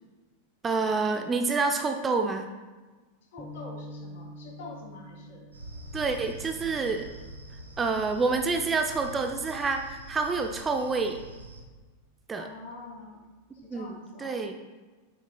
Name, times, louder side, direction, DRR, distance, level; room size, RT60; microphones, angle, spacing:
voice 1, 0.6-2.5 5.9-7.1 7.8-11.2 12.3-12.5 13.7-14.5, right 4 dB, 15° right, 5 dB, 0.5 m, -28 dB
voice 2, 3.3-5.5 12.4-13.3 13.5-14.5, left 2 dB, 55° left, -1 dB, 2.1 m, -45 dB
sound 1, 3.4-9.8, left 1 dB, 10° left, 0.8 m, -48 dB
sound 2, 5.5-11.6, right 1 dB, 80° right, 0.8 m, -44 dB
8.4 x 6.2 x 2.2 m, 1.3 s
figure-of-eight pair, 90°, 0 cm